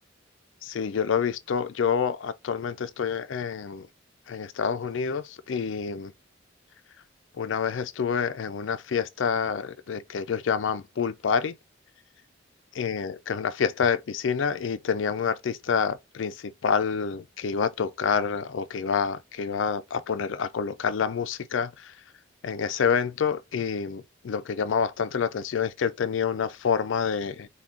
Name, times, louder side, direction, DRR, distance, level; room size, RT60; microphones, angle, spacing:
voice 1, 0.6-3.9 4.3-6.1 7.4-11.6 12.8-21.9 22.4-27.5, left 6 dB, 85° left, 0.4 m, -28 dB
5.9 x 2.3 x 3.7 m
head